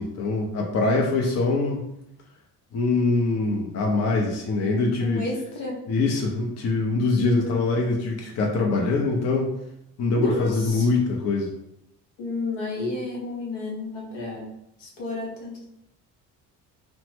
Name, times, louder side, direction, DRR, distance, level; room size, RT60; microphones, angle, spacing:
voice 1, 0.0-1.9 2.7-5.3 5.9-9.5 10.0-11.5, left 3 dB, 35° left, 0 dB, 0.6 m, -23 dB
voice 2, 5.0-5.8 7.2-7.6 10.1-10.9 12.2-14.5 14.8-15.6, left 2 dB, 65° left, -2 dB, 1.0 m, -31 dB
2.8 x 2.1 x 3.1 m, 0.81 s
hypercardioid pair, 50°, 47 cm